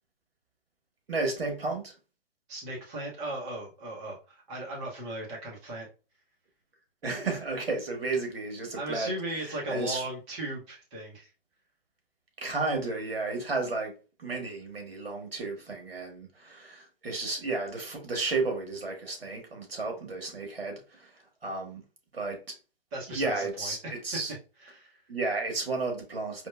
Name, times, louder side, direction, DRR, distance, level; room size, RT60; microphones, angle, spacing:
voice 1, 1.1-1.9 7.0-10.1 12.4-21.8 22.1-22.5 23.1-24.3 25.1-26.5, right 3 dB, 80° right, 1.5 m, -33 dB
voice 2, 2.5-5.9 8.8-11.3 22.9-24.0 24.7-25.0, right 1 dB, 30° right, 1.6 m, -37 dB
4.3 x 2.9 x 2.3 m
figure-of-eight pair, 125°, 30 cm